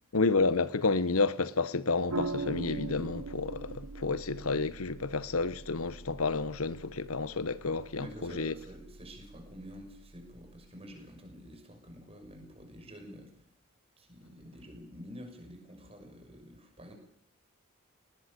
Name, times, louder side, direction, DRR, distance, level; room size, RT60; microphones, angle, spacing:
voice 1, 0.1-8.5, left 3 dB, 85° left, 1.1 m, -30 dB
sound 1, 2.1-10.7, right 2 dB, 90° right, 1.2 m, -42 dB
voice 2, 8.0-13.4 14.0-16.9, equal, 25° right, 6.3 m, -48 dB
19.5 x 19.0 x 8.4 m
head